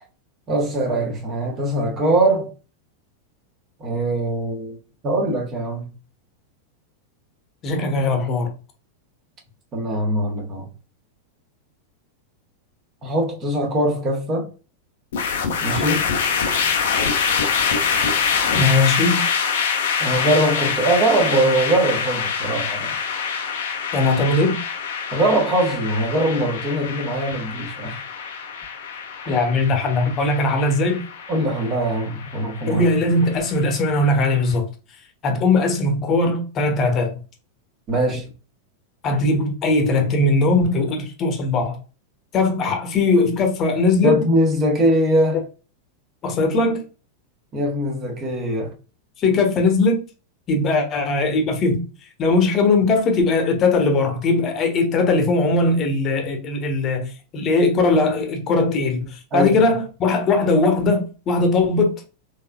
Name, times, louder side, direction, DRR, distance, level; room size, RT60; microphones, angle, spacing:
voice 1, 0.5-2.5 3.8-4.8 5.0-5.9 9.7-10.7 13.0-14.5 15.6-16.1 20.0-22.9 25.1-28.0 29.2-29.4 31.3-32.8 37.9-38.2 44.0-45.4 47.5-48.7 59.3-59.5, right 1 dB, 30° right, 1.5 m, -21 dB
voice 2, 7.6-8.5 18.5-19.2 23.9-24.6 29.3-31.0 32.7-34.7 35.2-37.2 39.0-41.8 42.3-44.3 46.2-46.8 49.2-50.0 50.5-51.8 52.2-62.0, left 3 dB, 30° left, 1.2 m, -19 dB
sound 1, 15.1-34.4, left 6 dB, 60° left, 0.8 m, -25 dB
4.0 x 3.5 x 2.3 m
figure-of-eight pair, 90°, 0 cm